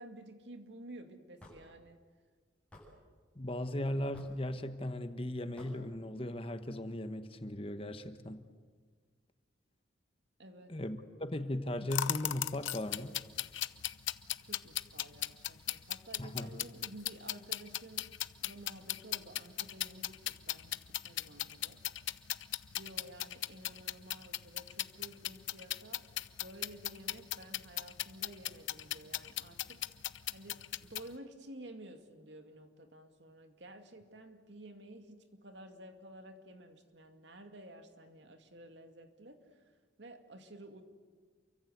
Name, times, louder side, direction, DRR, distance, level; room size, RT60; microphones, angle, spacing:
voice 1, 0.0-2.0 10.4-10.8 14.4-18.1 18.4-21.8 22.7-30.0 30.3-40.8, right 1 dB, 65° right, 6 dB, 2.4 m, -52 dB
Hammer / Wood, 1.4-1.6 2.7-2.9 4.1-4.4 5.6-5.8, left 1 dB, 5° left, 7.5 m, -52 dB
voice 2, 3.3-8.4 10.7-13.1 16.2-16.6, left 1 dB, 30° left, 9 dB, 1.2 m, -37 dB
sound 1, 11.9-31.1, left 13 dB, 90° left, 0.8 m, -38 dB
29.0 x 23.5 x 8.1 m, 1.5 s
head